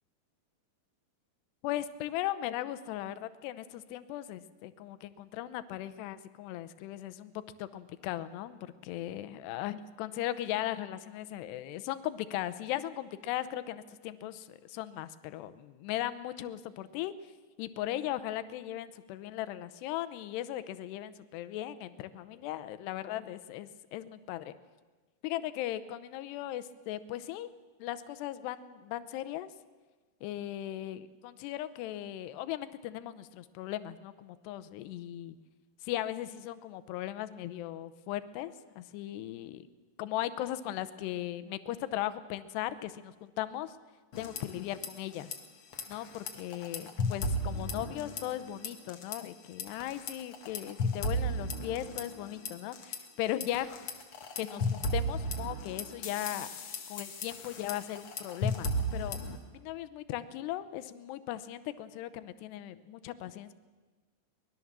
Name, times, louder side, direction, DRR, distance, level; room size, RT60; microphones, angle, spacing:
voice 1, 1.6-17.3 17.6-24.5 25.2-27.5 27.8-29.5 30.2-35.4 35.8-39.7 40.0-43.8 44.2-45.3 45.9-53.8 54.4-56.5 56.9-59.2 59.5-63.5, left 13 dB, 85° left, 13 dB, 2.9 m, -38 dB
sound 1, 44.1-44.9 45.1-45.4 45.7-48.4 48.6-49.2 49.6-53.0 53.4-59.4, left 1 dB, 45° left, 1.9 m, -34 dB
24.0 x 20.5 x 7.4 m, 1.3 s
omnidirectional pair, 4.8 m